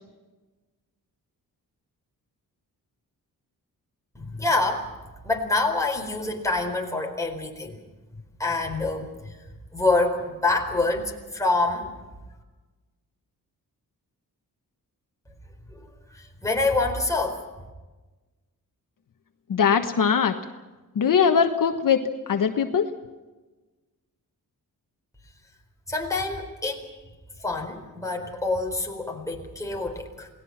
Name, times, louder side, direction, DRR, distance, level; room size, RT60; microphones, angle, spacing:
voice 1, 4.1-4.9 5.2-7.8 8.4-9.5 9.7-11.9 15.7-15.8 16.1-17.4 25.9-26.9 27.4-30.3, left 3 dB, 10° left, 1 dB, 4.2 m, -26 dB
voice 2, 19.5-20.3 20.9-22.9, left 7 dB, 65° left, 6 dB, 1.4 m, -21 dB
28.5 x 19.0 x 5.9 m, 1.2 s
wide cardioid pair, 130°, 35 cm